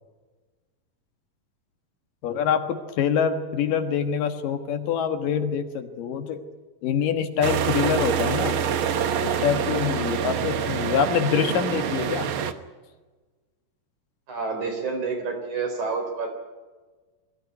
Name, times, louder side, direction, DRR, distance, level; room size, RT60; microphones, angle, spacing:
voice 1, 2.2-6.4 6.8-8.6 9.2-12.3, left 7 dB, 75° left, 7 dB, 3.0 m, -25 dB
sound 1, 7.4-12.5, right 7 dB, 80° right, 1.1 m, -26 dB
voice 2, 14.3-16.3, right 4 dB, 55° right, 4 dB, 5.3 m, -28 dB
21.0 x 16.0 x 9.6 m, 1.3 s
omnidirectional pair, 4.0 m